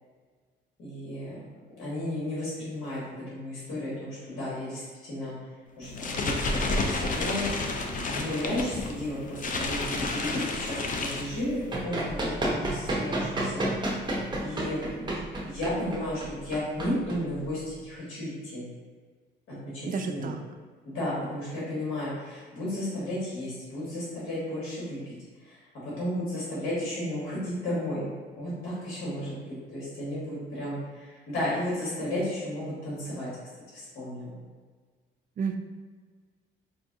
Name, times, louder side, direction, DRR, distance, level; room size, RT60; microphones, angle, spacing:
voice 1, 0.8-1.4 1.8-3.0 3.3-5.4 5.8-7.5 8.1-13.6 14.4-15.2 15.4-18.6 19.5-20.3 20.8-25.1 25.4-28.1 28.4-29.4 29.7-33.3 33.7-34.4, left 1 dB, 80° left, -7 dB, 1.5 m, -33 dB
sound 1, 5.8-11.7, left 2 dB, 40° left, 0.5 m, -31 dB
Run, 11.5-17.8, right 1 dB, 20° right, 0.8 m, -31 dB
voice 2, 19.9-20.4 35.4-35.6, right 5 dB, 45° right, 6 dB, 0.4 m, -31 dB
4.5 x 2.6 x 2.6 m, 1.5 s
cardioid pair, 90°, 20 cm